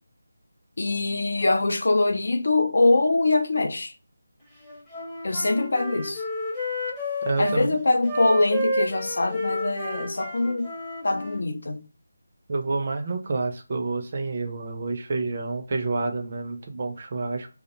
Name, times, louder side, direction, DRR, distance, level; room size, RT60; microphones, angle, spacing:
voice 1, 0.8-3.9 5.2-6.2 7.4-10.7 11.0-11.8, left 2 dB, 65° left, 0.4 m, -23 dB
Wind instrument woodwind instrument, 4.6-7.6 8.0-11.4, equal, 5° left, 0.6 m, -31 dB
voice 2, 7.2-7.8 12.5-17.5, right 3 dB, 40° right, 0.4 m, -28 dB
2.3 x 2.1 x 2.7 m
figure-of-eight pair, 165°, 0 cm